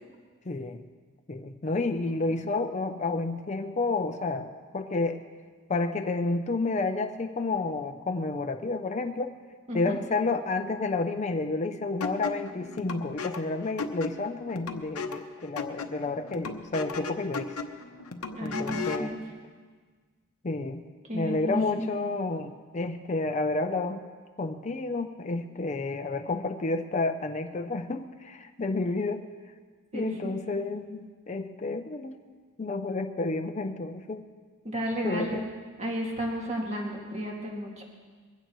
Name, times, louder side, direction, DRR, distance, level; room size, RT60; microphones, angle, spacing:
voice 1, 0.5-0.8 1.3-5.2 5.7-9.3 9.7-17.5 18.4-19.1 20.4-20.8 21.1-24.0 24.4-29.2 29.9-32.2 32.6-34.3 35.0-35.4, left 3 dB, 30° left, 5 dB, 0.6 m, -30 dB
sound 1, 12.0-19.1, left 4 dB, 70° left, 0.9 m, -36 dB
voice 2, 18.3-19.2 21.0-21.9 29.9-30.4 34.6-35.4 35.8-37.8, equal, 30° right, -1 dB, 2.2 m, -33 dB
22.0 x 16.0 x 3.1 m, 1.5 s
head